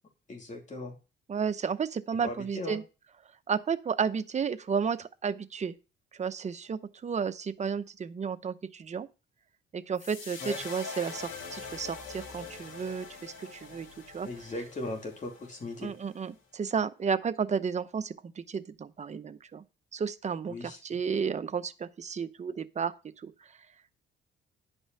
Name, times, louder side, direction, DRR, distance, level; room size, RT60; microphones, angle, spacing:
voice 1, 0.3-0.9 2.2-2.8 10.4-10.6 14.2-15.9 20.5-20.8, left 2 dB, 35° left, 3.0 m, -38 dB
voice 2, 1.3-2.8 3.5-5.7 6.2-9.1 9.7-14.3 15.8-19.6 19.9-22.9 23.2-23.3, right 6 dB, 35° right, 0.8 m, -32 dB
sound 1, 10.0-16.3, left 5 dB, 80° left, 2.4 m, -44 dB
10.0 x 5.5 x 5.5 m
cardioid pair, 90°, 20 cm